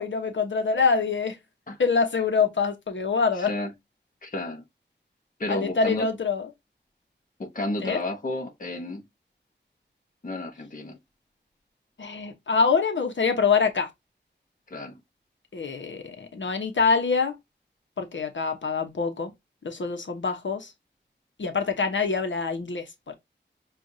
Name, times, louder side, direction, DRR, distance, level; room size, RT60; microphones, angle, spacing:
voice 1, 0.0-1.4 1.8-3.5 5.5-6.5 7.8-8.0 12.0-13.9 15.5-17.4 18.0-19.3 19.6-20.7 21.4-23.1, left 5 dB, 80° left, 0.9 m, -25 dB
voice 2, 3.4-3.7 4.2-4.6 5.4-6.1 7.4-9.0 10.2-11.0 14.7-15.0, left 2 dB, 45° left, 1.0 m, -31 dB
6.3 x 2.5 x 2.6 m
wide cardioid pair, 85°, 19 cm